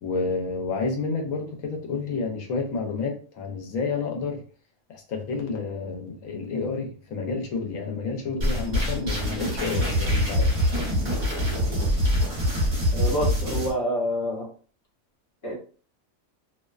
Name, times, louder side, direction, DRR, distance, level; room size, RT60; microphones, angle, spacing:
voice 1, 0.0-4.4 4.9-10.5, left 4 dB, 80° left, 1.0 m, -30 dB
sound 1, 8.4-13.7, left 1 dB, 40° right, 1.0 m, -24 dB
voice 2, 12.9-14.5 15.4-15.6, equal, 50° left, 0.9 m, -27 dB
2.5 x 2.1 x 2.3 m
omnidirectional pair, 1.4 m